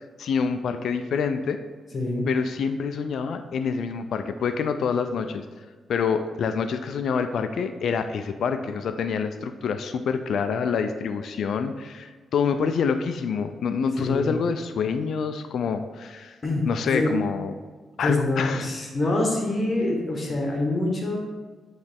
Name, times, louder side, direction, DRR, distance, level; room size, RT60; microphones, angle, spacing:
voice 1, 0.0-1.6 2.3-5.4 5.9-16.4 16.7-17.5 18.0-18.7, left 6 dB, 75° left, 8 dB, 0.3 m, -26 dB
voice 2, 1.9-2.3 14.0-14.3 16.4-16.6 16.9-17.1 18.0-21.2, left 2 dB, 40° left, 0 dB, 1.1 m, -25 dB
9.5 x 3.2 x 3.5 m, 1.4 s
cardioid pair, 105°, 0 cm